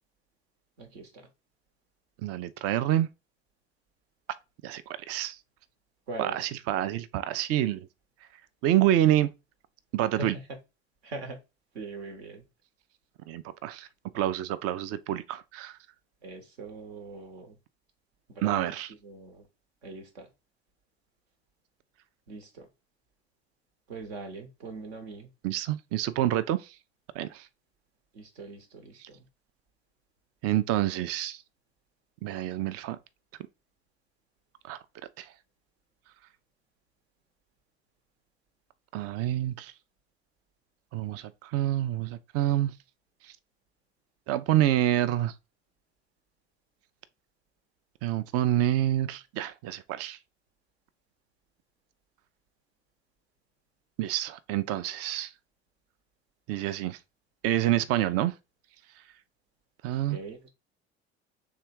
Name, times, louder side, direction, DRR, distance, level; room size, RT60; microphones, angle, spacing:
voice 1, 0.8-1.3 6.1-6.4 10.2-10.4 11.0-11.4 11.7-12.4 16.2-17.6 18.3-19.5 19.8-20.3 22.3-22.7 23.9-25.3 28.1-29.2 60.1-60.5, right 3 dB, 70° right, 1.2 m, -41 dB
voice 2, 2.2-3.1 4.6-5.4 6.2-7.9 8.6-9.3 9.9-10.3 13.3-13.9 14.1-15.8 18.4-18.9 25.4-26.7 27.1-27.5 29.0-29.1 30.4-31.4 32.2-33.0 34.6-34.8 35.2-35.3 38.9-39.7 40.9-42.7 44.3-45.3 48.0-50.2 54.0-55.3 56.5-57.0 57.4-58.3 59.8-60.2, right 13 dB, 45° right, 0.5 m, -27 dB
3.6 x 3.3 x 4.5 m
figure-of-eight pair, 60°, 33 cm